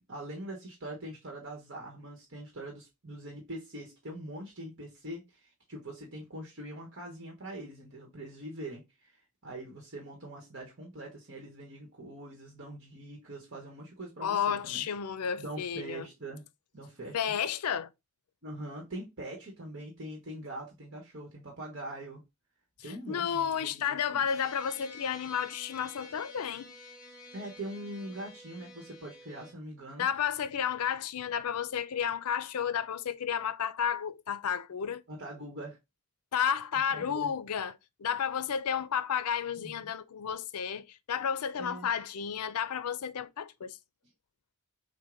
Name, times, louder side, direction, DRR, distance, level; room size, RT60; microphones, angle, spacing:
voice 1, 0.0-14.8 15.4-16.4 16.7-17.2 18.4-22.2 22.8-24.2 27.3-30.0 35.1-35.8 36.9-37.3 39.6-39.9 41.6-41.9, right 1 dB, 55° right, 1.1 m, -43 dB
voice 2, 14.2-16.1 17.1-17.9 22.8-26.7 30.0-35.0 36.3-43.8, left 8 dB, 85° left, 0.5 m, -32 dB
sound 1, 24.2-29.5, left 3 dB, 15° left, 1.9 m, -50 dB
6.3 x 2.2 x 3.7 m
head